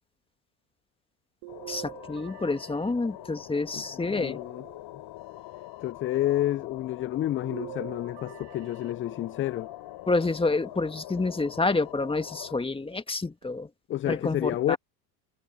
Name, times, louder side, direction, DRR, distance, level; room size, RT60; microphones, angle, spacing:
sound 1, 1.4-3.7 4.4-5.4 7.4-9.5 10.4-11.3 11.9-12.0 13.4-13.5, right 21 dB, 60° right, 2.0 m, -46 dB
sound 2, 1.5-12.6, left 17 dB, 55° left, 5.6 m, -44 dB
voice 1, 1.7-4.4 10.1-13.7 14.1-14.8, left 3 dB, 10° left, 1.8 m, -28 dB
voice 2, 3.7-4.6 5.8-9.7 13.9-14.8, left 13 dB, 25° left, 0.4 m, -30 dB
hypercardioid pair, 85°, 49 cm